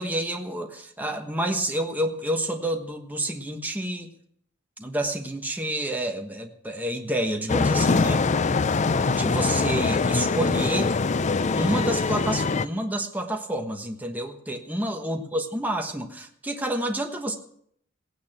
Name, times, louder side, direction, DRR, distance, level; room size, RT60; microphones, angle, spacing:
voice 1, 0.0-4.1 4.8-8.2 9.1-10.9 11.6-17.3, right 1 dB, 10° right, 3 dB, 1.2 m, -29 dB
sound 1, 7.5-12.7, left 4 dB, 35° left, 0.5 m, -23 dB
17.0 x 9.5 x 5.9 m, 0.66 s
head